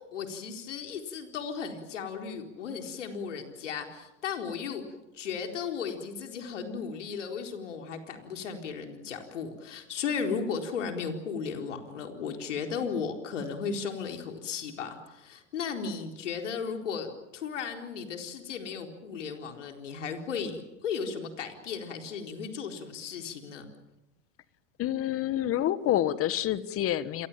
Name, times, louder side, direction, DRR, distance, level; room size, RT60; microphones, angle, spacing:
voice 1, 0.0-4.8 5.1-23.7, left 6 dB, 80° left, 4 dB, 4.3 m, -35 dB
voice 2, 24.8-27.3, left 12 dB, 40° left, 15 dB, 1.5 m, -28 dB
29.0 x 22.5 x 7.5 m, 0.97 s
hypercardioid pair, 95°, 36 cm